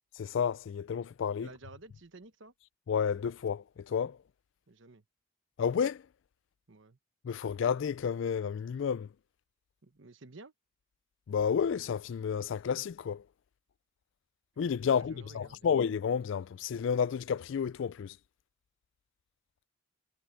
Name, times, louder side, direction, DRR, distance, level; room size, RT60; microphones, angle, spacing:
voice 1, 0.2-1.5 2.9-4.2 5.6-6.0 7.2-9.1 11.3-13.2 14.6-18.2, left 7 dB, 60° left, 0.3 m, -31 dB
voice 2, 1.4-2.5 4.7-5.0 6.7-7.0 9.8-10.5 14.8-15.7, right 3 dB, 60° right, 1.1 m, -52 dB
head